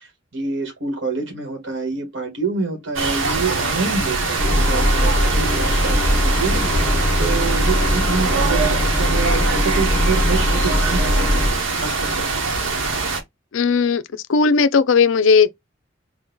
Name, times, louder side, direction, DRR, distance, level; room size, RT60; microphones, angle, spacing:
voice 1, 0.0-11.4 11.7-12.3, right 4 dB, 65° right, 1.4 m, -27 dB
sound 1, 3.0-13.2, right 3 dB, 85° right, 1.0 m, -23 dB
sound 2, 4.4-11.5, equal, 10° right, 2.0 m, -20 dB
voice 2, 13.5-14.0 14.3-15.5, left 5 dB, 75° left, 0.4 m, -16 dB
3.9 x 2.3 x 3.7 m
head